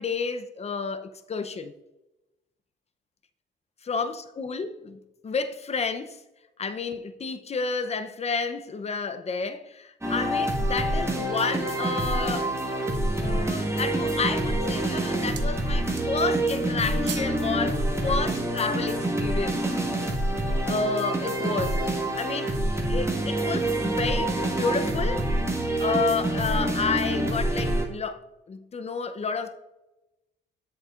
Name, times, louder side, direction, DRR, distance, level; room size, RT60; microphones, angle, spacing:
voice 1, 0.0-1.7 3.8-5.0 5.2-6.2 6.6-12.5 12.8-19.6 20.6-21.8 22.2-22.6 22.9-25.3 25.8-28.2 28.5-29.6, left 5 dB, 30° left, 0.7 m, -30 dB
sound 1, 10.0-27.8, right 1 dB, 15° right, 1.6 m, -26 dB
sound 2, 11.0-11.7 12.3-12.4 12.8-13.4 14.1-14.5 14.8-15.6 15.8-16.4 16.6-17.4 17.7-17.9, right 8 dB, 65° right, 0.9 m, -42 dB
8.0 x 7.0 x 2.5 m
cardioid pair, 90°, 20 cm